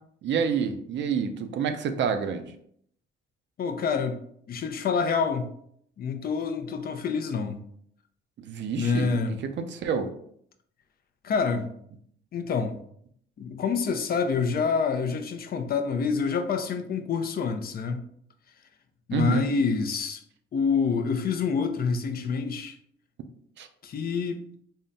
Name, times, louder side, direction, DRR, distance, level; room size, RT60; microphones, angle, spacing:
voice 1, 0.2-2.5 8.4-9.1 9.4-10.1 19.1-19.5 23.6-23.7, right 6 dB, 65° right, 8 dB, 0.5 m, -28 dB
voice 2, 3.6-4.2 4.5-5.5 6.0-7.6 8.7-9.4 11.2-11.7 12.3-12.8 13.4-18.0 19.1-20.2 20.5-22.7 23.8-24.4, left 5 dB, 50° left, 7 dB, 0.5 m, -27 dB
3.7 x 2.2 x 3.9 m, 0.67 s
cardioid pair, 90°, 20 cm